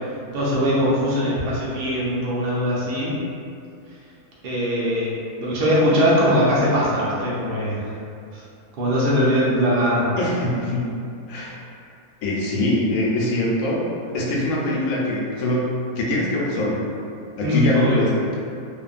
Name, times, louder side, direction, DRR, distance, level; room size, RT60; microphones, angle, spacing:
voice 1, 0.3-3.1 4.4-5.1 5.4-7.9 8.3-8.4 8.8-10.1 17.4-18.0, equal, 80° right, -7 dB, 0.5 m, -21 dB
voice 2, 10.2-10.9 11.3-11.6 12.2-13.8 14.1-16.8 17.4-18.4, left 1 dB, 70° left, -4 dB, 0.8 m, -23 dB
2.9 x 2.1 x 2.4 m, 2.4 s
omnidirectional pair, 1.6 m